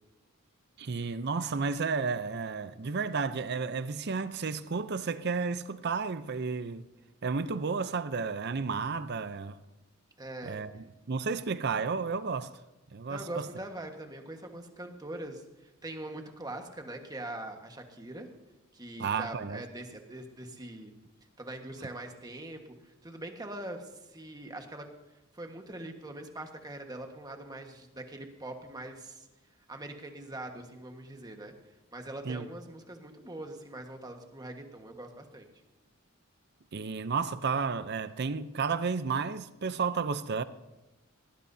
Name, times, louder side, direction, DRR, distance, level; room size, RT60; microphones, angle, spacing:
voice 1, 0.8-6.8 7.2-9.6 10.4-12.5 12.9-13.5 19.0-19.6 32.3-32.5 36.7-40.4, right 5 dB, 55° right, 0.6 m, -32 dB
voice 2, 10.2-10.6 13.1-18.3 18.7-20.9 21.4-24.9 25.3-29.3 29.7-31.5 31.9-35.5, right 1 dB, 20° right, 1.4 m, -42 dB
19.0 x 18.0 x 2.7 m
head